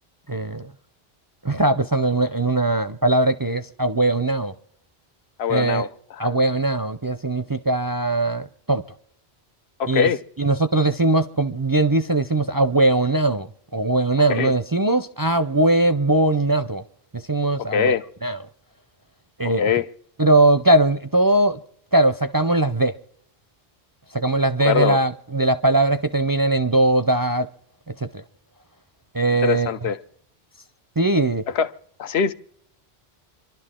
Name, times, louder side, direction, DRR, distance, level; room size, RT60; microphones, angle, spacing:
voice 1, 0.3-0.6 1.4-4.5 5.5-5.9 6.2-8.8 9.9-10.1 10.4-13.5 13.7-16.8 17.3-17.9 18.2-18.4 19.4-19.6 20.2-21.6 21.9-22.9 24.1-27.5 29.1-29.7 31.0-31.4, right 2 dB, 30° right, 0.5 m, -20 dB
voice 2, 5.4-6.3 9.8-10.2 14.3-14.5 17.6-18.1 19.4-19.9 24.6-25.0 29.4-30.0 31.5-31.7 32.0-32.3, left 7 dB, 80° left, 1.0 m, -22 dB
27.0 x 12.0 x 3.7 m
omnidirectional pair, 1.1 m